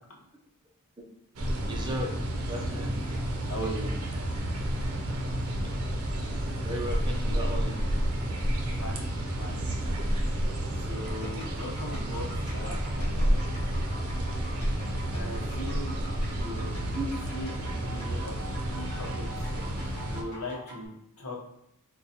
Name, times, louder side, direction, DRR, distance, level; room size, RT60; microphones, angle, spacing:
sound 1, 1.4-20.2, right 1 dB, 70° right, 0.6 m, -30 dB
voice 1, 1.6-2.1 2.5-2.9 6.6-7.8 16.9-17.1, right 1 dB, 20° right, 0 dB, 0.5 m, -35 dB
voice 2, 3.5-3.9 8.8-10.1 10.7-13.6 15.1-16.0 16.3-18.4 18.7-21.4, equal, 70° left, -1 dB, 0.8 m, -40 dB
sound 2, 10.9-20.9, right 1 dB, 30° left, 1.3 m, -46 dB
3.9 x 2.2 x 2.8 m, 0.76 s
head